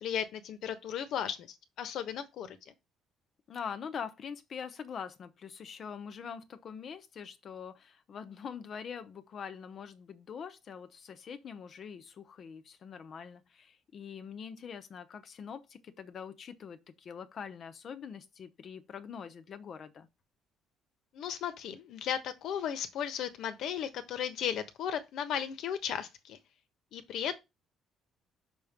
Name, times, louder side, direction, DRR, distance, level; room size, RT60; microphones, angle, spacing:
voice 1, 0.0-1.5 1.8-2.7 21.1-26.4 26.9-27.3, left 9 dB, 70° left, 1.2 m, -35 dB
voice 2, 3.5-20.1, left 7 dB, 50° left, 1.0 m, -44 dB
6.1 x 3.7 x 5.9 m
cardioid pair, 100°, 0 cm